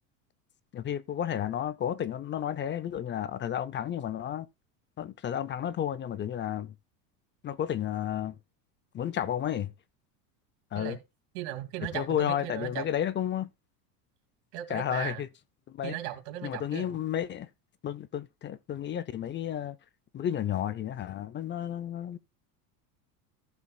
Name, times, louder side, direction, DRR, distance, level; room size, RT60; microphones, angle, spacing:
voice 1, 0.7-4.5 5.0-6.7 7.4-8.4 8.9-9.7 10.7-11.0 11.9-13.5 14.7-15.3 15.7-16.0 16.4-17.5 17.8-19.8 20.1-22.2, left 10 dB, 25° left, 0.5 m, -32 dB
voice 2, 11.3-12.9 14.5-15.2 15.8-16.9, right 13 dB, 60° right, 2.5 m, -37 dB
15.0 x 6.9 x 2.3 m
supercardioid pair, 115°, 48 cm